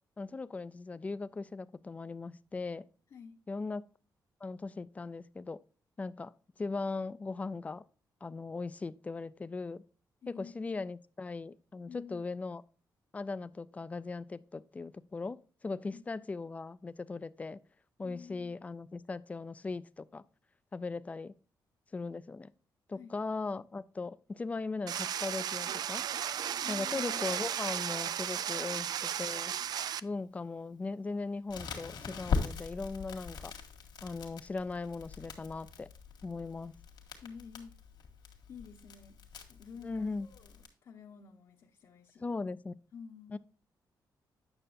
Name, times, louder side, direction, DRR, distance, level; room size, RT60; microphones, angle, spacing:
voice 1, 0.2-2.9 3.5-3.9 4.4-5.6 6.0-6.3 6.6-7.8 8.2-9.8 10.3-12.6 13.1-15.4 15.6-17.6 18.0-20.2 20.7-21.4 21.9-22.5 22.9-26.1 26.7-29.5 30.0-33.5 34.0-35.9 36.2-36.8 39.8-40.3 42.2-42.7 43.3-43.4, left 3 dB, 20° left, 0.3 m, -39 dB
voice 2, 10.2-10.8 11.9-12.3 15.9-16.1 18.0-18.6 22.9-23.2 26.6-27.2 37.2-37.8 38.5-39.2 39.5-42.3 42.9-43.4, left 6 dB, 55° left, 0.9 m, -50 dB
sound 1, 24.9-30.0, right 9 dB, 60° right, 0.3 m, -35 dB
Crackle, 31.5-40.7, left 5 dB, 75° left, 1.9 m, -41 dB
8.9 x 6.5 x 2.5 m
wide cardioid pair, 145°, 8 cm